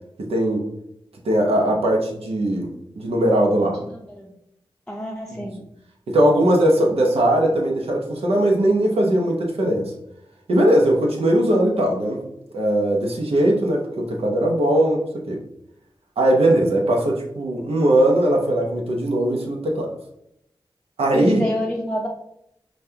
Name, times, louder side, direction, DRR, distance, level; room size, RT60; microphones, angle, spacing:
voice 1, 0.2-0.7 1.2-3.8 5.3-5.4 6.1-9.9 10.5-12.2 12.5-15.0 15.3-15.4 16.2-19.9 21.0-21.4, right 1 dB, 90° right, 0 dB, 0.8 m, -19 dB
voice 2, 3.7-4.3 4.9-5.6 21.1-22.1, left 1 dB, 5° left, -2 dB, 0.6 m, -28 dB
5.2 x 2.4 x 2.8 m, 0.78 s
cardioid pair, 55°, 10 cm